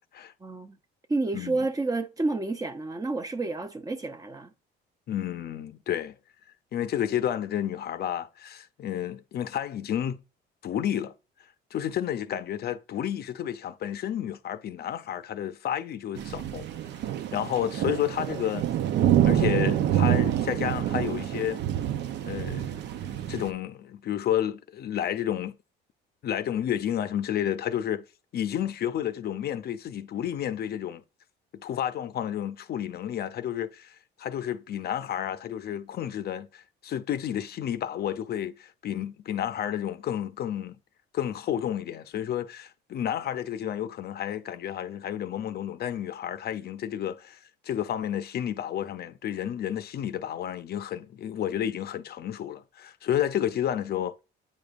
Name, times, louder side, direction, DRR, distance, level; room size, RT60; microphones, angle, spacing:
voice 1, 0.4-0.8 1.1-4.5, right 3 dB, 20° right, 0.8 m, -30 dB
voice 2, 5.1-6.1 6.7-10.2 10.6-11.1 11.7-16.7 17.3-18.7 19.2-21.6 22.2-22.7 23.3-25.6 26.2-28.0 28.3-31.0 31.5-40.7 41.1-54.1, left 10 dB, 50° left, 0.7 m, -31 dB
sound 1, 16.2-23.5, right 11 dB, 60° right, 0.7 m, -27 dB
8.8 x 5.1 x 2.5 m
cardioid pair, 110°, 20 cm